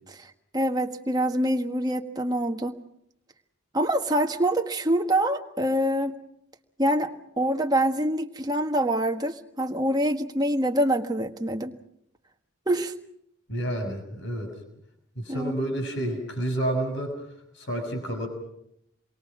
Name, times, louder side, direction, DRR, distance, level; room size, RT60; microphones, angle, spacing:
voice 1, 0.1-2.8 3.7-6.1 6.8-7.1 7.4-11.8 12.7-12.9 15.3-15.5, right 1 dB, 20° right, 4 dB, 1.5 m, -25 dB
voice 2, 13.5-14.5 15.1-17.2 17.5-18.3, right 1 dB, 55° left, 4 dB, 6.6 m, -29 dB
28.5 x 23.0 x 6.1 m, 0.75 s
head